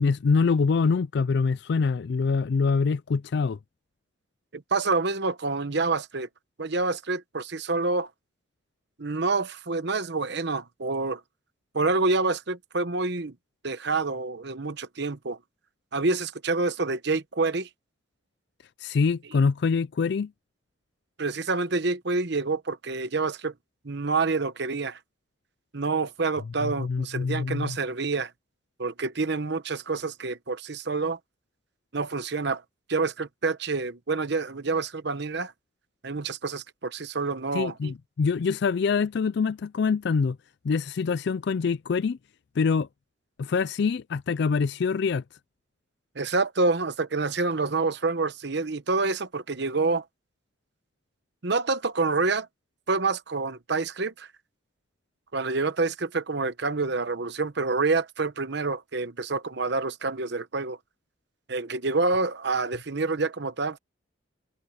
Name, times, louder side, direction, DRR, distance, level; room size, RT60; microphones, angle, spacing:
voice 1, 0.0-3.6 18.8-20.3 26.6-27.8 37.5-40.4 40.6-42.2 42.6-42.9 43.4-45.2, left 5 dB, 55° left, 0.4 m, -25 dB
voice 2, 4.5-6.3 6.6-8.1 9.0-11.2 11.7-13.4 13.6-15.4 15.9-17.7 21.2-23.5 23.8-25.0 25.7-28.3 28.8-31.2 31.9-32.6 32.9-35.5 36.0-37.9 46.1-50.0 51.4-52.5 52.9-54.3 55.3-60.8 61.5-63.8, right 3 dB, 60° right, 1.0 m, -27 dB
open air
head